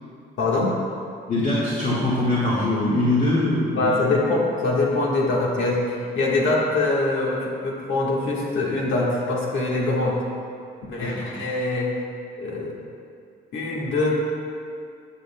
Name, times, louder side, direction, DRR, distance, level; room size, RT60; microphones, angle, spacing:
voice 1, 0.4-0.8 3.8-10.2 10.9-11.9 12.4-12.7 13.5-14.1, left 2 dB, 80° left, -3 dB, 1.5 m, -23 dB
voice 2, 1.3-4.0 11.0-11.3, left 2 dB, 40° left, -9 dB, 1.7 m, -22 dB
12.5 x 7.6 x 2.2 m, 2.4 s
cardioid pair, 90°, 20 cm